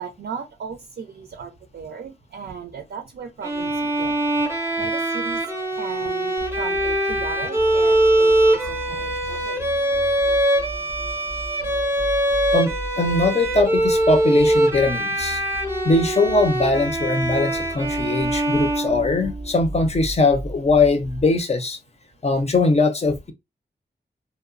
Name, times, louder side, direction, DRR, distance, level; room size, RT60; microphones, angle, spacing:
voice 1, 0.0-5.4 5.7-9.7, right 6 dB, 75° right, 0.4 m, -36 dB
Bowed string instrument, 3.4-19.5, right 1 dB, 15° right, 0.6 m, -22 dB
sound 1, 6.4-21.5, equal, 85° left, 0.8 m, -37 dB
voice 2, 12.5-15.4 15.8-21.8 22.2-23.3, left 3 dB, 40° left, 0.5 m, -21 dB
2.8 x 2.0 x 2.4 m
wide cardioid pair, 75°, 17 cm